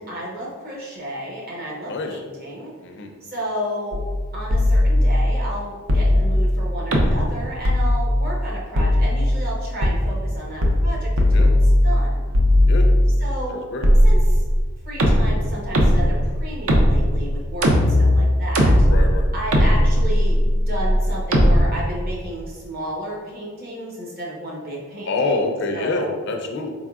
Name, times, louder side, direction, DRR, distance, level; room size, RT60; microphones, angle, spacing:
voice 1, 0.0-2.7 3.2-4.0 4.3-12.2 13.2-13.6 14.0-14.4 14.8-18.9 19.3-26.1, equal, 45° right, -4 dB, 0.9 m, -32 dB
sound 1, 3.9-4.2 4.5-5.3 5.9-6.5 6.9-7.3 7.6-8.3 8.8-9.4 9.8-10.0 10.6-10.9 11.2-12.0 12.3-13.2 13.8-14.6 15.0-21.6, left 1 dB, 70° right, 0.5 m, -17 dB
voice 2, 13.5-13.9 18.8-19.3 25.1-26.7, left 3 dB, 55° left, 3 dB, 0.4 m, -26 dB
4.1 x 3.5 x 2.3 m, 1.5 s
head